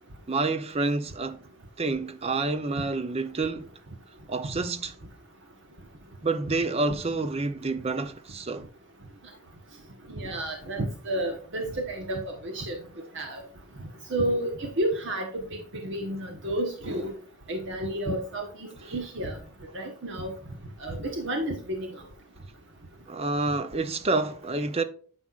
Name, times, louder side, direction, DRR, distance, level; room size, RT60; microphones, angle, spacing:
voice 1, 0.3-1.4 1.8-3.7 4.3-4.9 6.2-8.7 23.1-24.8, right 3 dB, 30° right, 0.6 m, -28 dB
voice 2, 10.1-12.7 13.1-13.4 14.1-17.1 17.5-19.4 19.7-20.3 20.8-21.9, right 1 dB, 60° right, 1.1 m, -31 dB
9.5 x 6.2 x 2.4 m
head